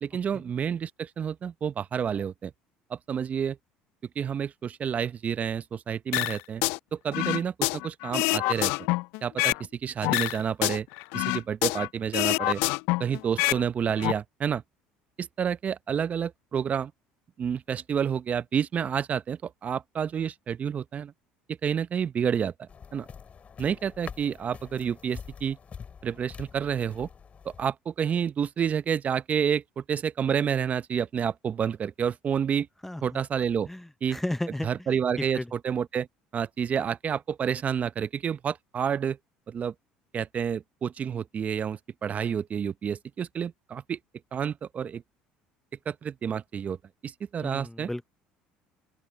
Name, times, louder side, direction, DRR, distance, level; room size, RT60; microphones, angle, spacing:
voice 1, 0.0-2.5 2.9-3.6 4.2-6.6 6.9-8.7 9.2-9.5 9.8-10.9 11.1-12.6 13.0-14.6 15.2-16.9 17.4-21.1 21.5-23.1 23.6-25.6 26.0-27.1 27.4-32.7 33.0-33.7 34.0-34.2 34.6-36.1 36.3-39.2 39.5-39.7 40.1-44.0 44.3-45.0 45.9-46.8 47.0-47.9, right 7 dB, 40° right, 0.8 m, -29 dB
sound 1, 6.1-6.8 7.1-9.7 10.0-11.9 12.1-13.6 13.9-14.1, left 25 dB, 75° left, 0.3 m, -26 dB
sound 2, 22.7-27.7, left 6 dB, 35° left, 6.2 m, -45 dB
voice 2, 32.8-33.2 33.7-34.7 35.3-35.5 47.4-48.1, left 1 dB, 5° left, 0.7 m, -34 dB
open air
hypercardioid pair, 75°, 4 cm